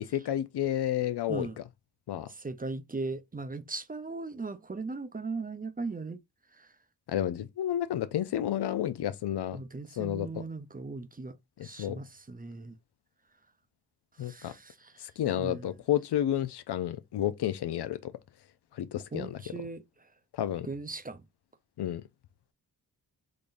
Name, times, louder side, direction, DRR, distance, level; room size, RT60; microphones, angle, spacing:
voice 1, 0.1-1.5 2.1-2.3 7.1-9.6 10.0-10.4 11.6-12.0 14.2-14.5 15.0-18.1 18.8-19.4 20.4-20.7 21.8-22.0, left 11 dB, 90° left, 0.6 m, -31 dB
voice 2, 2.4-6.2 9.5-11.4 11.6-12.7 14.3-14.9 15.4-15.7 19.1-19.8 20.6-21.2, right 3 dB, 20° right, 0.5 m, -38 dB
3.8 x 3.3 x 2.5 m
cardioid pair, 75°, 39 cm